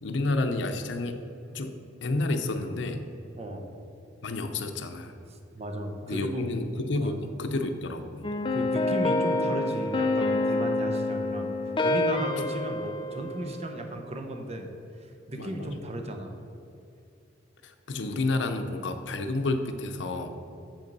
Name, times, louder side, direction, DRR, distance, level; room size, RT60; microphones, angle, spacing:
voice 1, 0.0-1.2 1.5-1.7 2.0-3.0 4.2-5.1 6.0-8.2 15.3-15.7 17.6-20.3, left 2 dB, 70° left, 7 dB, 0.6 m, -30 dB
voice 2, 3.4-3.7 5.3-6.5 6.9-7.1 8.5-11.5 11.8-14.7 15.0-16.4, right 1 dB, 35° right, 4 dB, 0.8 m, -35 dB
sound 1, 8.2-13.9, left 2 dB, 25° left, 0.4 m, -27 dB
7.4 x 5.3 x 5.3 m, 2.7 s
head